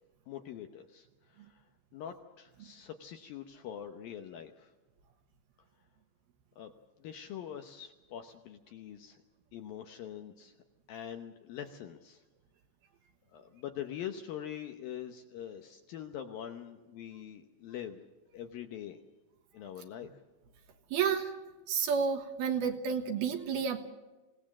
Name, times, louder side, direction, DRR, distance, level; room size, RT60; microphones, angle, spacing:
voice 1, 0.3-1.6 1.9-4.7 6.6-6.7 7.0-9.2 9.5-10.5 10.9-12.2 13.3-18.1 18.3-19.0 19.5-20.1, left 10 dB, 70° left, 6 dB, 2.3 m, -44 dB
voice 2, 20.9-21.3 21.7-23.8, right 6 dB, 65° right, 6 dB, 3.0 m, -30 dB
26.5 x 18.0 x 7.5 m, 1.1 s
omnidirectional pair, 5.2 m